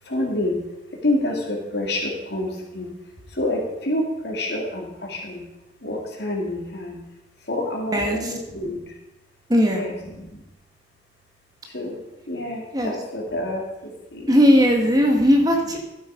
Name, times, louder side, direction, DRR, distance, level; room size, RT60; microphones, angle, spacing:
voice 1, 0.0-2.9 3.3-5.4 5.8-7.0 7.4-9.0 9.7-10.4 11.6-12.0 12.3-14.3 15.2-15.3, left 1 dB, 60° left, 0 dB, 2.6 m, -28 dB
voice 2, 9.5-9.8 12.7-12.9 14.3-15.8, equal, 20° right, 2 dB, 1.4 m, -17 dB
12.5 x 8.1 x 4.9 m, 0.94 s
head